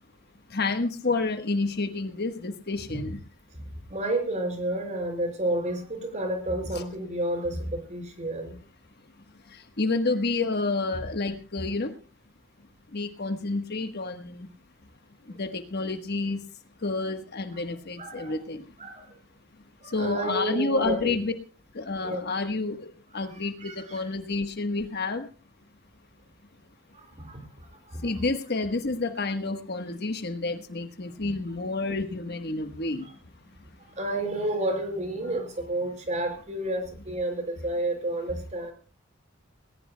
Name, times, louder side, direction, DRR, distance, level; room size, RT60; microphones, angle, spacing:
voice 1, 0.5-3.2 9.5-11.9 12.9-14.5 15.3-16.4 16.8-18.7 19.8-21.3 21.7-25.3 28.0-33.1, left 3 dB, 50° left, 7 dB, 1.3 m, -29 dB
voice 2, 3.9-8.6 13.2-13.3 17.6-17.7 18.0-18.4 18.8-19.1 19.8-21.1 22.0-22.2 23.3-24.0 26.9-27.4 27.8-28.0 31.2-31.3 33.0-33.1 33.9-38.7, right 1 dB, 35° right, 4 dB, 5.0 m, -31 dB
20.0 x 18.5 x 2.2 m, 0.36 s
head